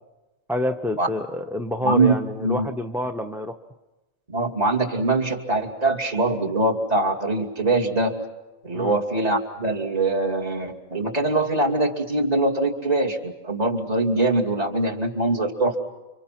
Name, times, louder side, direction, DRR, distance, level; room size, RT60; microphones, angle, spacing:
voice 1, 0.5-3.6 8.7-9.0, left 1 dB, ahead, 6 dB, 0.6 m, -28 dB
voice 2, 1.8-2.1 2.4-2.7 4.3-8.2 8.6-15.8, right 2 dB, 25° right, 4 dB, 2.8 m, -23 dB
30.0 x 26.0 x 6.0 m, 1.1 s
omnidirectional pair, 1.5 m